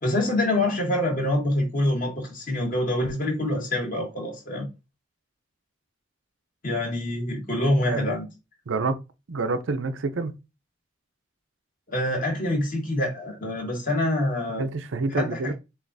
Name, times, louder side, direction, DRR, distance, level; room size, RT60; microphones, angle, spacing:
voice 1, 0.0-4.7 6.6-8.2 11.9-14.7 15.1-15.5, left 1 dB, 45° left, 1.8 m, -26 dB
voice 2, 8.7-9.0 9.3-10.4 14.6-15.5, right 3 dB, 90° right, 0.6 m, -27 dB
7.1 x 2.5 x 2.6 m
head